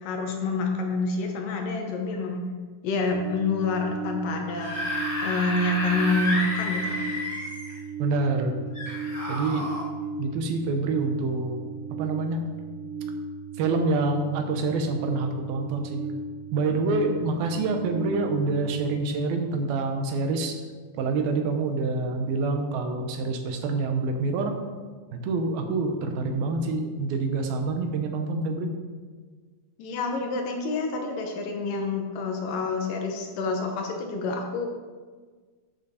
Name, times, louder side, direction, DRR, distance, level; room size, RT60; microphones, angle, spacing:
voice 1, 0.0-2.4 2.8-4.8 5.2-7.1 29.8-34.7, left 3 dB, 70° left, 2 dB, 2.5 m, -28 dB
sound 1, 3.1-19.0, right 3 dB, 55° right, 2.2 m, -36 dB
Screaming / Screech, 4.4-7.8 8.7-9.8, left 1 dB, 35° left, 0.8 m, -31 dB
voice 2, 8.0-8.6 9.3-9.7 10.2-11.6 12.0-12.5 13.6-16.0 16.5-20.6 21.0-24.6 25.2-28.7, right 3 dB, 85° right, 5 dB, 2.8 m, -27 dB
11.0 x 6.9 x 4.2 m, 1.5 s
omnidirectional pair, 4.2 m